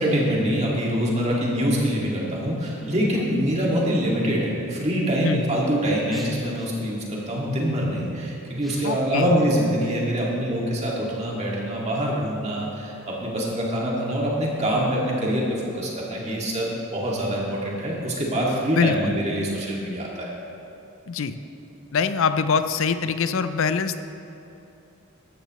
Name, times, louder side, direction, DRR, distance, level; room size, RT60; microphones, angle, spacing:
voice 1, 0.0-15.5 15.7-20.3, equal, 30° right, -4 dB, 2.0 m, -25 dB
sound 1, 2.6-3.7 4.4-4.8 5.3-9.0, equal, ahead, 1.2 m, -44 dB
voice 2, 8.8-9.3 18.7-19.2 21.1-21.4 21.9-24.0, left 5 dB, 60° left, 11 dB, 0.5 m, -23 dB
14.0 x 12.0 x 3.1 m, 2.9 s
head